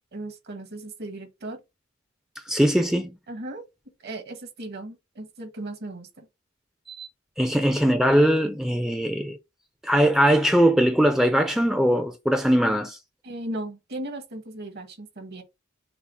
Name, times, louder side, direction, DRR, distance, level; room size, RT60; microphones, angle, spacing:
voice 1, 0.1-1.6 3.3-3.6 4.0-6.3 13.2-15.4, right 1 dB, 55° right, 1.2 m, -36 dB
voice 2, 2.5-3.1 6.9-7.1 7.4-9.4 9.8-13.0, equal, ahead, 0.4 m, -21 dB
5.8 x 2.0 x 4.1 m
head